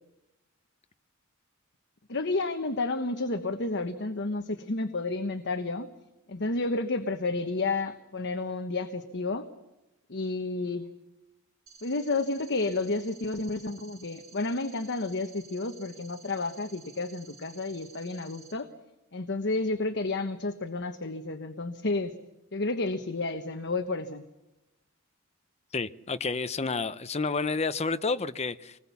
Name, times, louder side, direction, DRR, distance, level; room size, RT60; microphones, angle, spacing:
voice 1, 2.1-5.9 6.3-9.5 10.1-10.9 11.8-18.7 19.1-22.1 22.5-24.2, left 3 dB, 55° left, 1.2 m, -31 dB
sound 1, 11.7-18.5, right 6 dB, 65° right, 6.2 m, -53 dB
voice 2, 25.7-28.8, left 4 dB, 30° left, 0.8 m, -30 dB
26.0 x 20.0 x 7.1 m
head